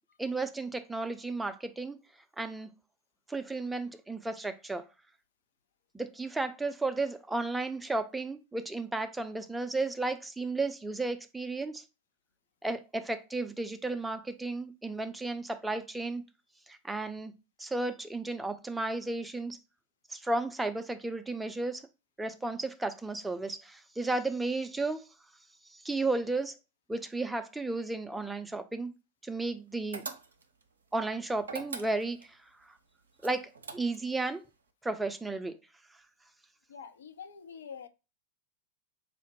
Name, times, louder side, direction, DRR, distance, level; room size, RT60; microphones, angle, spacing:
voice 1, 0.2-2.0 2.4-2.7 3.3-4.8 5.9-11.8 12.6-16.2 16.7-17.3 17.6-19.6 20.1-21.8 22.2-25.1 25.7-26.6 26.9-28.9 29.2-30.0 30.9-32.4 33.2-34.4 34.8-35.6, right 2 dB, 5° right, 0.4 m, -33 dB
sound 1, 29.9-30.6 31.4-32.3 33.2-34.2, right 4 dB, 70° right, 0.5 m, -41 dB
voice 2, 36.7-37.9, left 6 dB, 65° left, 0.4 m, -45 dB
4.2 x 2.1 x 3.0 m
figure-of-eight pair, 90°, 0 cm